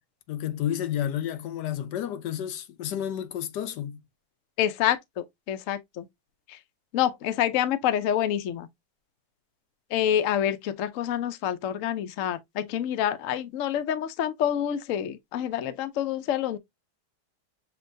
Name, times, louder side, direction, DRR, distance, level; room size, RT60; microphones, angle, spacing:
voice 1, 0.3-4.0, left 10 dB, 80° left, 1.3 m, -31 dB
voice 2, 4.6-6.0 6.9-8.7 9.9-16.6, left 10 dB, 60° left, 0.9 m, -27 dB
6.6 x 3.0 x 2.6 m
omnidirectional pair, 1.8 m